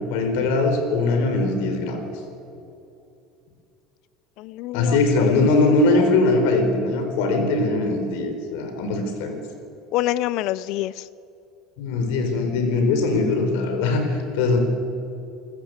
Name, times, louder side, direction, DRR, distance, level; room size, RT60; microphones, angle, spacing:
voice 1, 0.1-2.0 4.7-9.3 11.8-14.6, left 3 dB, 70° left, 5 dB, 4.2 m, -21 dB
voice 2, 4.4-5.2 5.7-6.2 9.9-11.1, left 15 dB, 50° left, 19 dB, 0.5 m, -27 dB
28.5 x 14.5 x 8.1 m, 2.7 s
cardioid pair, 170°, 0 cm